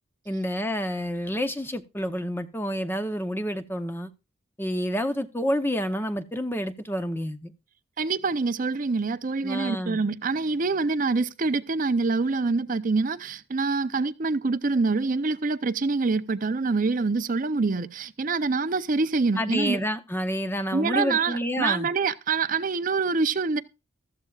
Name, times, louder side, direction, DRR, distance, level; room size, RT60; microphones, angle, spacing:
voice 1, 0.3-4.1 4.6-7.5 9.4-10.0 19.4-21.9, equal, 10° left, 0.7 m, -29 dB
voice 2, 8.0-19.8 20.7-23.6, right 4 dB, 40° right, 0.5 m, -25 dB
14.5 x 13.5 x 2.4 m
head